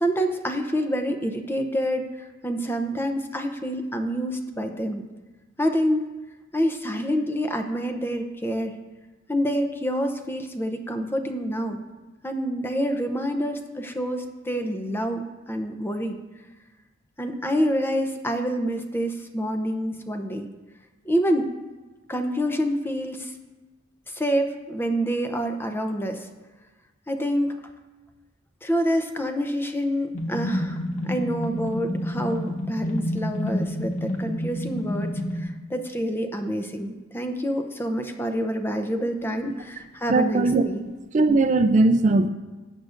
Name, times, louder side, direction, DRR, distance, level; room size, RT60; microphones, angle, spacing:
voice 1, 0.0-5.1 5.6-6.1 6.5-8.7 9.3-11.8 12.2-16.2 17.2-20.5 21.0-21.5 22.1-23.3 24.1-26.3 27.1-27.5 28.6-30.8 31.1-40.8, equal, 10° left, 6 dB, 0.6 m, -27 dB
sound 1, 30.1-35.4, left 1 dB, 40° left, 1.3 m, -29 dB
voice 2, 40.1-40.7 41.1-42.3, right 3 dB, 40° right, 8 dB, 0.3 m, -19 dB
17.5 x 6.4 x 2.5 m, 1.2 s
head